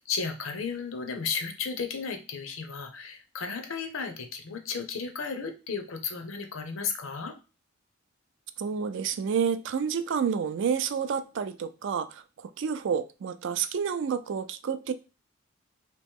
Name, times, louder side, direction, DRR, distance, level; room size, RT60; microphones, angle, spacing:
voice 1, 0.0-7.4, left 5 dB, 80° left, 6 dB, 0.7 m, -34 dB
voice 2, 8.6-14.9, right 7 dB, 65° right, 12 dB, 0.4 m, -29 dB
3.0 x 2.9 x 3.5 m, 0.32 s
head